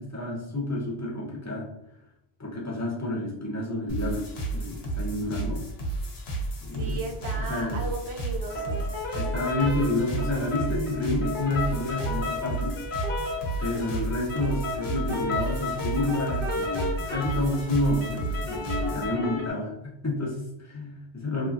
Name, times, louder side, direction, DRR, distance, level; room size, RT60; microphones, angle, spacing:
voice 1, 0.0-1.7 2.4-5.6 6.6-7.0 7.5-7.8 9.1-12.7 13.6-21.5, left 1 dB, 25° left, -4 dB, 0.3 m, -29 dB
sound 1, 3.9-19.1, right 2 dB, 70° left, 0.9 m, -32 dB
voice 2, 6.7-8.9, right 3 dB, 75° right, 0 dB, 0.9 m, -36 dB
sound 2, 8.5-19.5, left 3 dB, 10° left, 0.7 m, -34 dB
2.9 x 2.3 x 2.4 m, 0.84 s
omnidirectional pair, 1.1 m